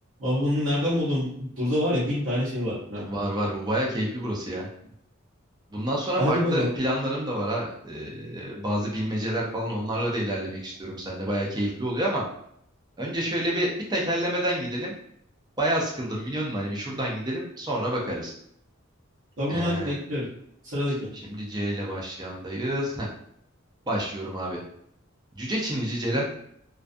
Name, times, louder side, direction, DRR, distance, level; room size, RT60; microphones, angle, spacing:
voice 1, 0.2-3.1 6.2-6.7 19.4-20.3 20.6-21.1 26.1-26.2, left 1 dB, 70° right, -10 dB, 0.8 m, -26 dB
voice 2, 3.1-4.7 5.7-12.2 13.0-15.0 15.6-18.3 19.5-19.9 21.1-23.1 23.9-24.6 25.4-26.2, right 1 dB, 20° right, -3 dB, 0.5 m, -28 dB
2.3 x 2.3 x 2.5 m, 0.70 s
head